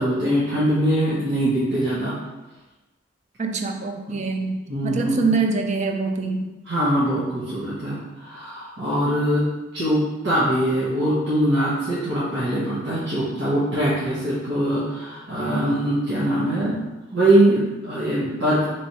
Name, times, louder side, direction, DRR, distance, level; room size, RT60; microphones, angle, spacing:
voice 1, 0.0-2.1 4.7-5.3 6.6-9.4 9.7-16.8 17.1-18.6, right 1 dB, 70° right, -11 dB, 1.2 m, -22 dB
voice 2, 3.4-4.6 4.8-6.5, right 3 dB, 40° right, 4 dB, 0.4 m, -24 dB
3.2 x 3.2 x 4.1 m, 1.1 s
head